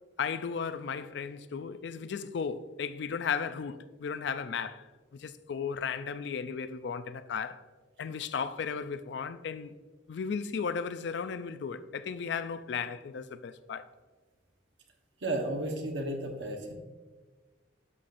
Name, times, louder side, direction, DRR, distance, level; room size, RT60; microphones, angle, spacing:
voice 1, 0.2-4.9 5.1-7.6 8.0-9.7 10.1-13.8, left 6 dB, 60° left, 0.3 m, -35 dB
voice 2, 15.2-16.7, right 1 dB, 70° right, 1.2 m, -33 dB
11.0 x 5.7 x 2.6 m
head